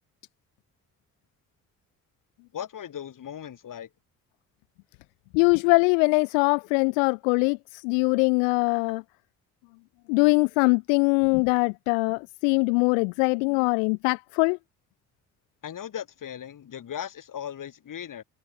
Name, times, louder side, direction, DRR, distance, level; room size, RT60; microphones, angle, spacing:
voice 1, 2.5-3.9 15.6-18.2, left 9 dB, 50° left, 2.9 m, -37 dB
voice 2, 5.3-9.0 10.1-14.6, left 39 dB, 70° left, 0.7 m, -22 dB
figure-of-eight pair, 45°, 41 cm